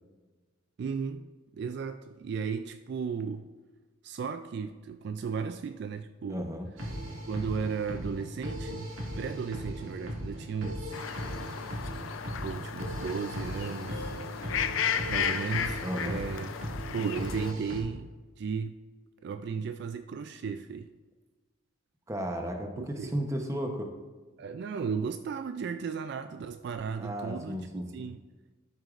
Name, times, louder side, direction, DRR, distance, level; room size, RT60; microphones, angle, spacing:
voice 1, 0.8-1.3 1.6-3.5 4.0-6.5 7.3-11.0 12.4-14.2 14.8-16.5 16.9-18.1 18.4-18.8 19.2-20.9 22.8-23.2 24.4-28.2, right 6 dB, 55° right, 9 dB, 0.3 m, -35 dB
voice 2, 6.3-6.7 15.8-16.2 22.1-23.9 27.0-28.1, equal, 15° right, 3 dB, 0.8 m, -34 dB
sound 1, 6.8-17.8, equal, 80° right, 1.9 m, -38 dB
sound 2, 10.9-17.5, left 7 dB, 75° left, 0.5 m, -34 dB
12.5 x 6.4 x 2.5 m, 1.3 s
head